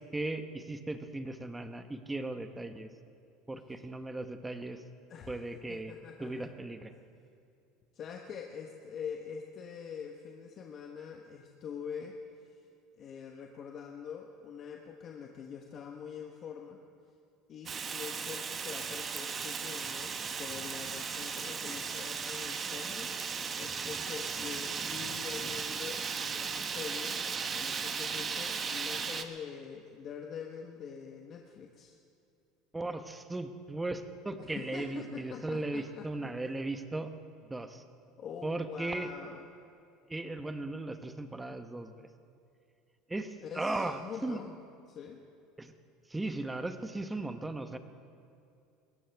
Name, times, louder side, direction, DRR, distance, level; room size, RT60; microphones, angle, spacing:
voice 1, 0.1-2.9 3.5-4.8 5.3-5.9 6.2-6.9 32.7-37.1 37.5-37.8 38.4-39.1 40.1-41.9 43.1-44.4 45.6-45.7 46.1-47.8, right 2 dB, 10° right, 8 dB, 1.1 m, -37 dB
voice 2, 5.1-6.5 7.9-12.2 12.4-12.5 12.9-16.8 17.5-23.1 23.6-27.2 27.5-32.0 34.4-36.3 38.2-39.4 43.4-44.6 44.9-45.2, left 7 dB, 45° left, 2 dB, 1.1 m, -44 dB
Fire, 17.7-29.2, right 6 dB, 35° right, 1.0 m, -36 dB
21.0 x 15.5 x 3.5 m, 2.5 s
supercardioid pair, 95°, 0 cm